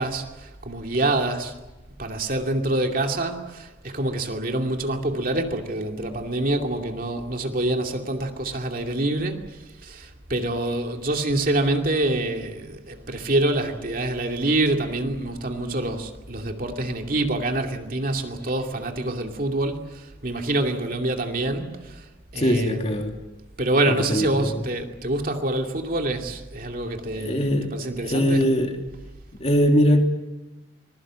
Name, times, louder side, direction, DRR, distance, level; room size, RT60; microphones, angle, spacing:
voice 1, 0.0-1.5 2.0-22.0 22.3-22.9 23.6-28.5, right 2 dB, 45° right, 2.6 m, -26 dB
voice 2, 22.4-23.1 24.1-24.5 27.1-27.7 28.0-28.8 29.4-30.0, equal, 35° left, 3.0 m, -21 dB
25.5 x 21.0 x 7.6 m
head